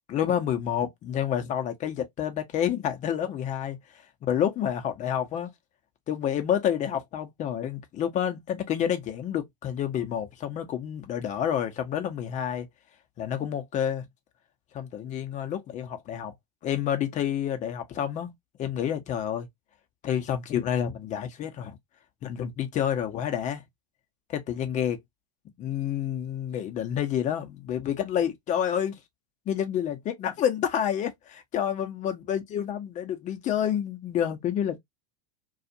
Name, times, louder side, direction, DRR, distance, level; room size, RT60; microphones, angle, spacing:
voice 1, 0.1-3.8 4.2-5.5 6.1-12.7 13.2-14.0 14.7-16.3 16.6-18.3 18.6-19.5 20.0-21.8 22.2-23.6 24.3-25.0 25.6-29.0 29.5-34.8, left 9 dB, 35° left, 0.8 m, -29 dB
2.4 x 2.4 x 2.7 m
hypercardioid pair, 85°, 21 cm